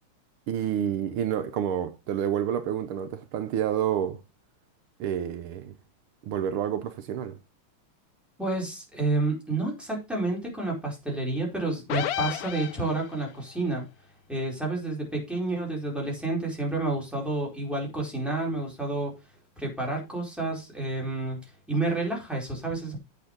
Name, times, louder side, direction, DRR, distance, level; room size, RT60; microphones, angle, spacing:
voice 1, 0.5-4.2 5.0-5.7 6.2-7.3, right 9 dB, 80° right, 1.7 m, -29 dB
voice 2, 8.4-13.8 14.3-19.1 19.6-21.4 21.7-23.0, right 2 dB, ahead, 4.4 m, -29 dB
sound 1, 11.9-13.3, left 11 dB, 85° left, 0.8 m, -31 dB
8.4 x 6.6 x 5.1 m
omnidirectional pair, 2.4 m